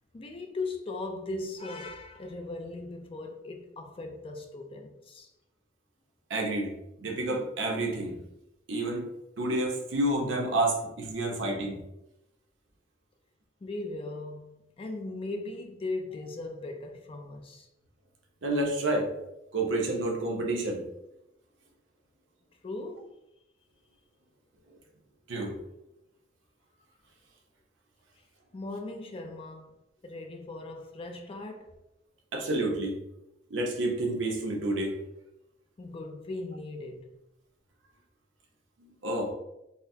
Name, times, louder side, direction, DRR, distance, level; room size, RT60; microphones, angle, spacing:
voice 1, 0.1-5.3 13.6-17.7 22.6-23.1 28.5-29.7 30.0-31.7 35.8-37.1, left 2 dB, 30° left, 0.4 m, -38 dB
voice 2, 6.3-6.7 7.0-8.2 8.7-9.1 9.4-11.8 18.4-19.1 19.5-20.8 25.3-25.5 32.3-33.0 33.5-35.0 38.8-39.3, right 1 dB, 80° right, 0.7 m, -29 dB
4.0 x 2.0 x 2.7 m
head